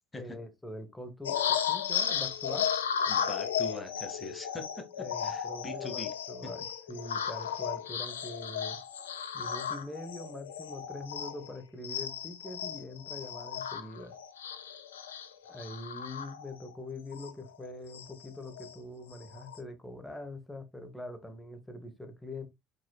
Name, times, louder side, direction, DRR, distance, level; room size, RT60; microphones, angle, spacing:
voice 1, 0.2-2.7 5.0-6.6 6.9-8.8 9.3-14.1 15.5-22.5, left 1 dB, 10° left, 1.8 m, -43 dB
sound 1, 1.2-11.5 11.8-16.7 17.1-17.3 17.6-18.7 19.1-19.6, left 8 dB, 90° left, 0.5 m, -35 dB
voice 2, 3.1-6.1, left 2 dB, 25° left, 1.8 m, -42 dB
5.3 x 4.1 x 2.4 m
hypercardioid pair, 60°, 0 cm